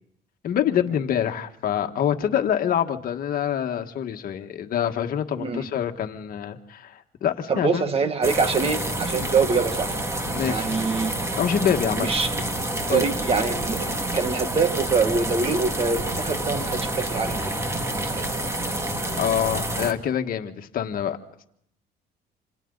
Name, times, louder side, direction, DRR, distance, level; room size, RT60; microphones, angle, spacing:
voice 1, 0.4-7.8 9.2-9.3 10.3-10.7 11.4-12.1 12.9-13.1 19.2-21.2, left 9 dB, 60° left, 6 dB, 1.7 m, -26 dB
voice 2, 5.4-5.7 7.5-10.0 10.4-11.1 12.0-12.3 12.9-17.6 17.9-18.2, right 4 dB, 35° right, 8 dB, 1.9 m, -25 dB
sound 1, 8.2-19.9, right 1 dB, 15° right, 2.2 m, -28 dB
29.0 x 27.5 x 4.0 m, 0.72 s
cardioid pair, 110°, 17 cm